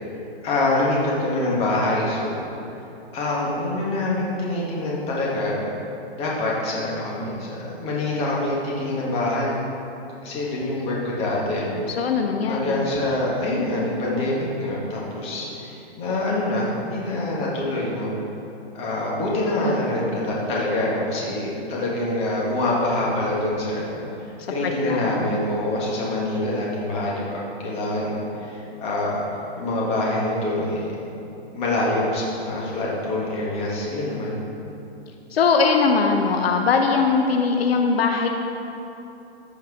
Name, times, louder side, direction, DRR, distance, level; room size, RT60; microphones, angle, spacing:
voice 1, 0.4-2.4 3.1-5.7 6.2-9.6 10.2-11.8 12.5-18.1 18.7-24.0 24.5-29.2 29.6-30.9 31.5-34.4, left 2 dB, 20° left, -5 dB, 1.5 m, -25 dB
voice 2, 11.9-12.8 24.4-25.4 35.3-38.3, left 5 dB, 65° left, 3 dB, 0.8 m, -21 dB
14.0 x 4.7 x 4.7 m, 2.9 s
hypercardioid pair, 160°, 32 cm